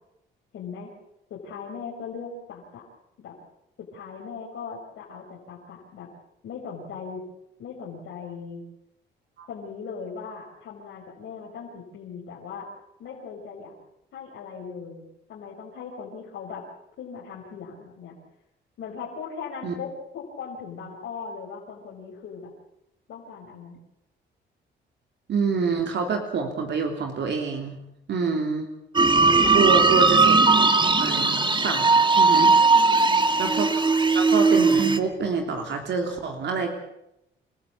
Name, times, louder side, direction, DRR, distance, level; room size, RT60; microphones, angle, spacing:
voice 1, 0.5-0.9 1.3-2.8 3.2-3.3 3.9-6.1 6.4-7.3 7.6-8.6 9.5-12.7 13.0-13.7 14.1-16.7 17.0-18.2 18.8-22.5 23.1-23.8 29.4-30.1 32.7-33.3, left 5 dB, 75° left, -5 dB, 5.8 m, -39 dB
voice 2, 25.3-27.8 28.1-28.7 29.5-30.3 31.0-31.9 32.1-32.5 33.4-33.8 34.1-36.7, right 4 dB, 65° right, 3 dB, 3.4 m, -26 dB
sound 1, 28.9-35.0, right 4 dB, 25° right, 1.8 m, -18 dB
28.0 x 14.5 x 8.5 m, 0.85 s
cardioid pair, 90°, 20 cm